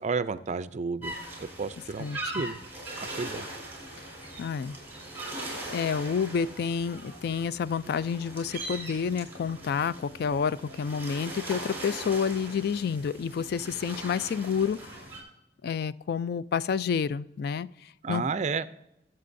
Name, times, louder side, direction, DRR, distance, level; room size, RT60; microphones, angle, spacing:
voice 1, 0.0-2.6 3.0-3.5 18.0-18.7, right 4 dB, 40° right, 14 dB, 0.5 m, -32 dB
sound 1, 1.0-15.2, right 1 dB, 15° right, 4.1 m, -40 dB
voice 2, 2.0-2.3 4.0-4.1 4.4-4.8 5.7-14.9 15.6-18.3, left 6 dB, 60° left, 17 dB, 0.3 m, -29 dB
21.5 x 7.6 x 2.6 m, 0.87 s
head